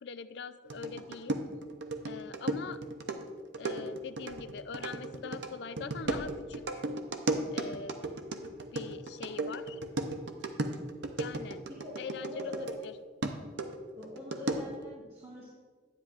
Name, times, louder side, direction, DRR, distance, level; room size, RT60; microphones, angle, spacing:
voice 1, 0.0-1.4 2.1-2.8 3.6-6.8 7.5-8.2 8.7-9.8 11.2-11.6 12.0-12.9, left 5 dB, 60° left, 12 dB, 0.4 m, -43 dB
sound 1, 0.7-12.9 13.2-14.8, right 2 dB, 70° right, 0.6 m, -36 dB
voice 2, 11.7-12.9 13.9-15.5, left 2 dB, 30° right, -8 dB, 1.7 m, -43 dB
9.7 x 9.4 x 2.5 m, 1.5 s
head